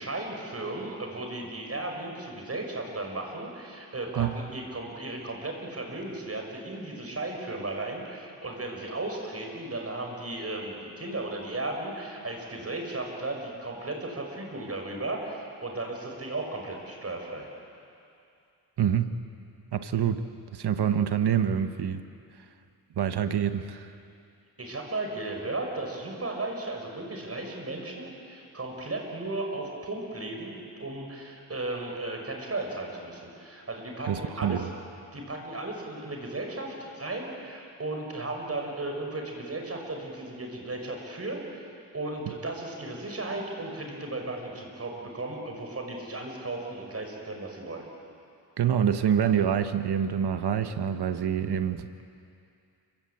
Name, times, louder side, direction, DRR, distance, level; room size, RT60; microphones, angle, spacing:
voice 1, 0.0-17.5 24.6-34.7 35.1-47.8, right 2 dB, 35° right, 1 dB, 6.1 m, -35 dB
voice 2, 18.8-19.1 19.7-20.2 20.5-22.0 23.0-23.9 34.1-34.7 48.6-51.9, right 8 dB, 70° right, 9 dB, 1.3 m, -26 dB
30.0 x 16.0 x 8.6 m, 2.5 s
cardioid pair, 65°, 40 cm